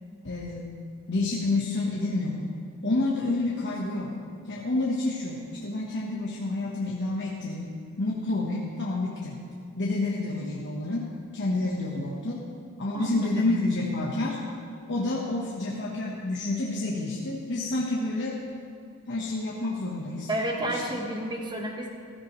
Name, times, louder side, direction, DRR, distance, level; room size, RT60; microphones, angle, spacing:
voice 1, 0.2-0.7 1.1-2.5 2.8-4.2 4.5-9.4 9.8-11.1 11.3-12.4 12.8-14.4 14.9-18.4 19.1-20.3 20.7-20.8, left 2 dB, 55° left, -4 dB, 1.2 m, -29 dB
voice 2, 12.9-13.6 20.3-21.9, right 1 dB, 20° right, 1 dB, 1.3 m, -31 dB
14.5 x 13.5 x 3.2 m, 2.4 s
head